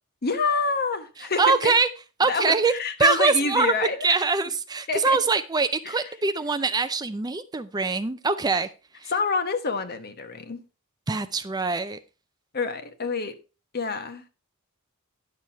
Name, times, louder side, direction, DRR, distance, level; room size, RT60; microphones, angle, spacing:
voice 1, 0.2-1.7 2.3-4.2 4.9-5.2 5.8-6.0 9.1-10.6 12.5-13.3 13.7-14.2, left 4 dB, 45° left, 1.2 m, -27 dB
voice 2, 1.4-1.9 2.2-2.7 3.0-3.7 4.0-8.7 9.0-9.1 11.1-12.0, right 4 dB, 20° right, 0.5 m, -23 dB
10.5 x 6.6 x 4.5 m
head